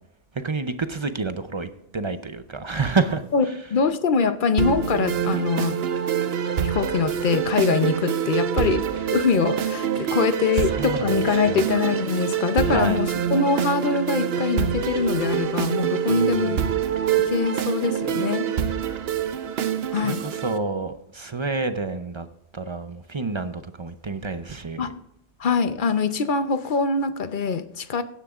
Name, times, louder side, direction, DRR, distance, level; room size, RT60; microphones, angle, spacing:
voice 1, 0.3-3.9 10.0-11.7 12.7-13.0 16.1-16.6 19.9-22.3 22.5-24.9, right 3 dB, 35° right, 10 dB, 0.5 m, -29 dB
voice 2, 3.7-5.8 6.6-16.6 17.2-18.5 19.9-20.2 24.8-24.9 25.4-28.0, left 5 dB, 50° left, 10 dB, 0.8 m, -23 dB
sound 1, 4.6-20.6, right 8 dB, 60° right, 0.9 m, -25 dB
16.5 x 10.0 x 2.4 m, 0.79 s
omnidirectional pair, 1.2 m